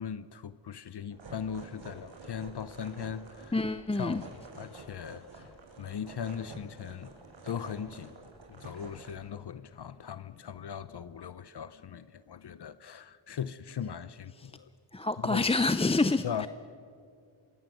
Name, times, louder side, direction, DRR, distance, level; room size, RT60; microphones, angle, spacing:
voice 1, 0.0-3.6 3.9-4.3 4.6-7.1 7.4-8.2 8.5-14.7 15.2-15.5 16.2-16.5, left 8 dB, 50° left, 0.8 m, -39 dB
sound 1, 1.1-9.2, right 3 dB, 60° right, 6.9 m, -49 dB
voice 2, 3.5-4.2 14.4-14.5 14.9-16.5, left 3 dB, 10° left, 0.5 m, -27 dB
27.0 x 23.0 x 7.8 m
wide cardioid pair, 100°, 50 cm